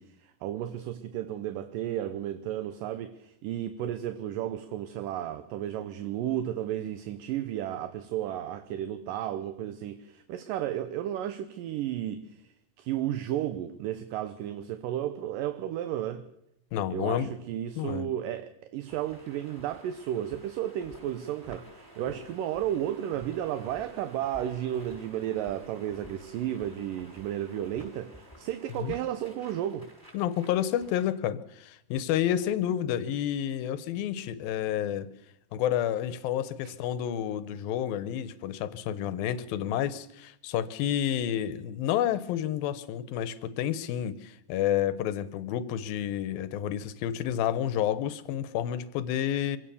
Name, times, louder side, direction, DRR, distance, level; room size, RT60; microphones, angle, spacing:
voice 1, 0.0-16.2 16.9-29.9 36.6-36.7, right 11 dB, 75° right, 2.5 m, -33 dB
voice 2, 16.7-17.3 17.8-18.1 28.8-28.9 30.1-35.1 35.5-49.6, left 10 dB, 85° left, 2.8 m, -30 dB
sound 1, 18.9-31.1, equal, 10° right, 6.7 m, -51 dB
24.5 x 17.0 x 7.0 m
omnidirectional pair, 4.1 m